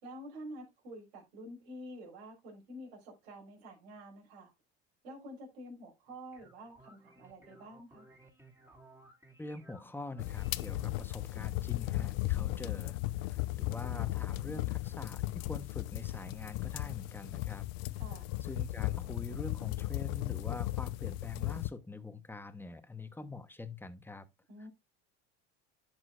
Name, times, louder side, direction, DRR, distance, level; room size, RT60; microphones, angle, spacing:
voice 1, 0.0-4.5 5.0-8.1 17.9-18.3 24.5-24.7, equal, 85° right, 4.6 m, -48 dB
sound 1, 6.1-11.3, right 2 dB, 10° right, 2.5 m, -60 dB
voice 2, 9.4-17.7 18.4-24.3, left 3 dB, 5° left, 1.0 m, -45 dB
sound 2, 10.2-21.7, left 18 dB, 75° left, 0.6 m, -36 dB
11.0 x 6.1 x 2.5 m
supercardioid pair, 105°, 31 cm